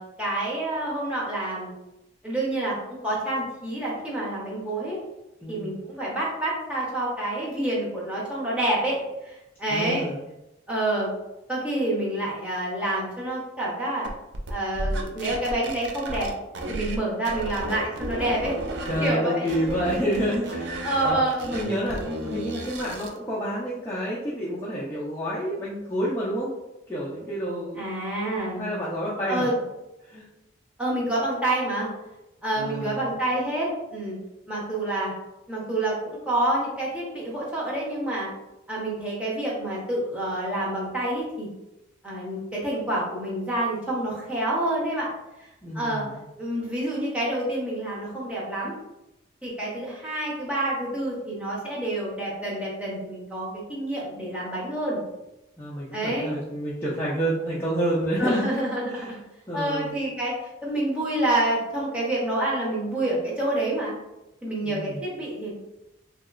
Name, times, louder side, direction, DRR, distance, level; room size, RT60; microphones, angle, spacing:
voice 1, 0.0-1.7 2.2-5.0 5.5-10.1 10.7-11.1 11.5-14.1 14.5-16.3 16.7-18.5 19.0-19.5 20.8-21.4 27.7-28.7 29.3-29.6 30.8-31.9 32.4-34.2 34.5-35.1 35.5-38.3 38.7-41.5 42.0-45.1 45.4-45.5 45.7-46.0 46.4-48.7 49.4-55.0 55.9-56.3 58.2-59.2 59.5-63.9 64.4-65.5, right 1 dB, 5° right, -6 dB, 0.8 m, -28 dB
voice 2, 9.7-10.2 18.9-21.2 21.5-26.5 26.9-27.9 28.6-29.5 30.1-30.3 32.6-33.1 45.6-46.2 55.6-58.5 58.9-59.2 59.5-59.9 64.6-65.0, equal, 10° left, -8 dB, 0.4 m, -29 dB
sound 1, 14.0-17.0 17.3-19.1 19.5-23.2, right 1 dB, 60° right, 0.4 m, -33 dB
2.9 x 2.8 x 2.4 m, 0.95 s
head